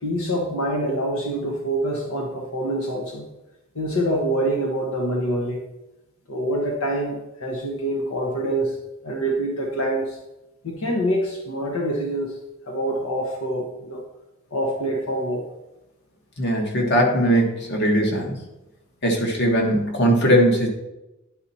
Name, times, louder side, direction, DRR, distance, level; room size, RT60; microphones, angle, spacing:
voice 1, 0.0-3.3 3.7-5.6 6.3-8.8 9.0-10.2 10.6-12.3 12.7-14.0 14.5-15.5, right 1 dB, 80° left, 1 dB, 1.1 m, -25 dB
voice 2, 16.4-18.3 19.0-20.7, equal, 55° left, 1 dB, 1.5 m, -19 dB
10.5 x 4.3 x 4.2 m, 0.98 s
head